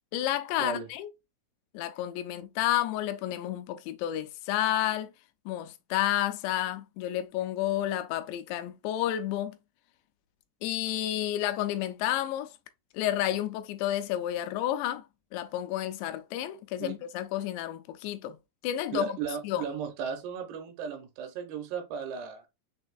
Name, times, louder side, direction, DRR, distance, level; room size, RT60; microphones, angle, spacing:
voice 1, 0.1-1.1 1.7-5.1 5.5-9.6 10.6-12.5 12.9-15.1 15.3-18.4 18.6-19.2 19.4-19.6, left 13 dB, 90° left, 2.8 m, -30 dB
voice 2, 18.9-22.4, right 7 dB, 80° right, 2.6 m, -35 dB
6.5 x 2.6 x 2.3 m
omnidirectional pair, 4.9 m